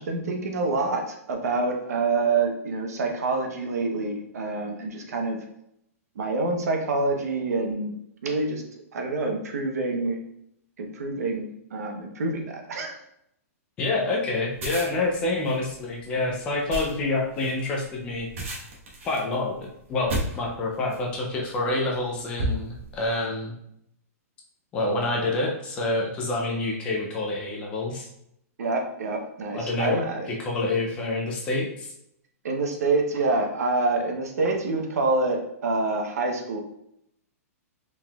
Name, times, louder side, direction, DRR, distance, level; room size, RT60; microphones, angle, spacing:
voice 1, 0.0-5.4 6.2-8.0 8.2-8.6 8.9-10.2 10.8-13.0 28.6-30.2 32.4-36.6, right 3 dB, 75° right, 3 dB, 0.9 m, -27 dB
voice 2, 13.8-18.3 19.0-23.6 24.7-28.1 29.5-30.0 30.3-31.9, left 2 dB, 10° left, -1 dB, 0.4 m, -27 dB
sound 1, 14.5-21.1 21.8-22.0 22.4-23.1, right 1 dB, 55° right, 1.2 m, -34 dB
4.4 x 3.6 x 2.3 m, 0.77 s
hypercardioid pair, 175°, 8 cm